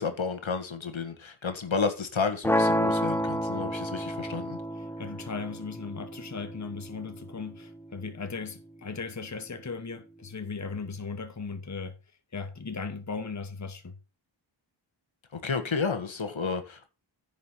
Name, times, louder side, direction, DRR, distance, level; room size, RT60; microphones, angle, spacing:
voice 1, 0.0-4.6 15.3-16.9, left 5 dB, 80° left, 1.7 m, -31 dB
sound 1, 2.4-8.5, equal, 5° left, 0.4 m, -31 dB
voice 2, 5.0-12.0 12.3-14.0, left 4 dB, 35° left, 1.1 m, -37 dB
10.0 x 5.2 x 5.6 m
wide cardioid pair, 60°, 46 cm